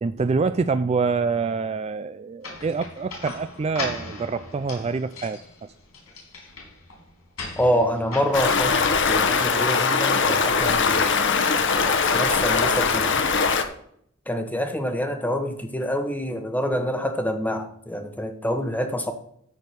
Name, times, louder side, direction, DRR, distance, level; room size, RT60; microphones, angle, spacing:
voice 1, 0.0-5.7, right 4 dB, 30° right, 11 dB, 0.3 m, -26 dB
sound 1, 2.4-10.1, left 2 dB, 85° left, 4.4 m, -38 dB
voice 2, 7.6-8.8 9.1-11.1 12.0-13.2 14.3-19.1, equal, 10° left, 6 dB, 1.1 m, -26 dB
Stream, 8.3-13.6, left 5 dB, 60° left, 1.1 m, -21 dB
13.5 x 4.5 x 6.3 m, 0.68 s
head